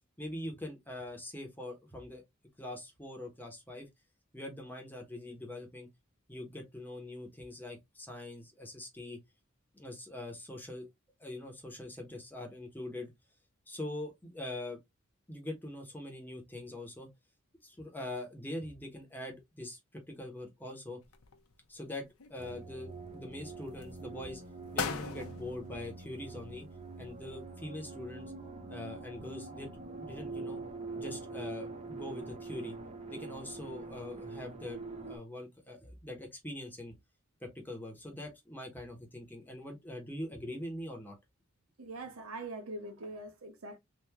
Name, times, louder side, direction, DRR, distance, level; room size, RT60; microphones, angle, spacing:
voice 1, 0.2-2.2 2.6-3.9 4.3-5.9 6.3-9.2 9.7-10.9 11.2-13.1 13.7-14.8 15.3-17.1 17.6-21.0 21.7-24.4 24.7-26.7 27.0-28.3 28.7-30.6 31.0-32.7 33.1-36.9 37.4-41.1, left 1 dB, 10° left, 1.1 m, -43 dB
sound 1, 21.0-21.8 22.2-23.1 23.6-24.0 24.4-24.5 24.8-26.7 27.0-27.1, left 5 dB, 80° left, 0.7 m, -40 dB
sound 2, 22.4-35.2, right 3 dB, 30° right, 0.8 m, -44 dB
voice 2, 41.8-43.8, right 2 dB, 75° right, 1.0 m, -43 dB
3.6 x 2.5 x 2.9 m
head